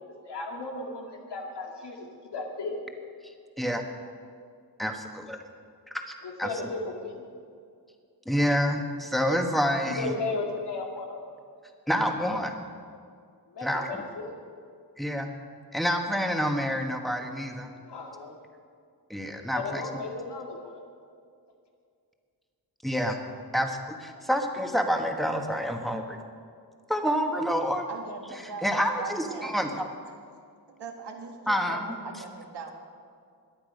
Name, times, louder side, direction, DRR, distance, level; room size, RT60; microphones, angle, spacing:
voice 1, 0.2-2.1 2.3-2.8 6.2-7.3 9.9-11.2 13.5-14.4 17.8-18.3 19.5-20.8, left 3 dB, 85° left, 1 dB, 2.3 m, -35 dB
voice 2, 4.8-5.4 6.4-6.5 8.2-10.1 11.9-12.5 13.6-14.0 15.0-15.3 15.7-17.7 19.1-19.8 22.8-23.2 23.5-26.2 26.9-27.8 28.6-29.8 31.5-32.0, equal, ahead, 3 dB, 1.4 m, -27 dB
voice 3, 27.9-29.6 30.7-32.7, right 4 dB, 90° right, 2 dB, 1.8 m, -41 dB
22.0 x 8.6 x 5.3 m, 2.3 s
wide cardioid pair, 100°, 40 cm